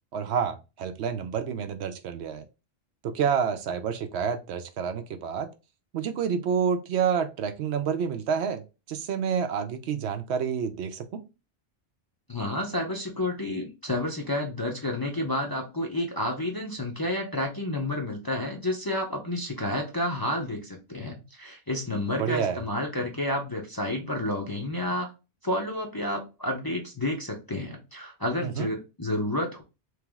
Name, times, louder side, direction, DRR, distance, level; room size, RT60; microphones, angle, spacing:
voice 1, 0.1-2.5 3.0-5.5 5.9-8.6 8.9-11.2 22.2-22.6 28.4-28.7, right 7 dB, 75° right, 8 dB, 0.8 m, -28 dB
voice 2, 12.3-25.1 25.4-29.6, left 1 dB, 25° left, 0 dB, 0.5 m, -30 dB
3.3 x 3.0 x 3.5 m, 0.28 s
omnidirectional pair, 1.2 m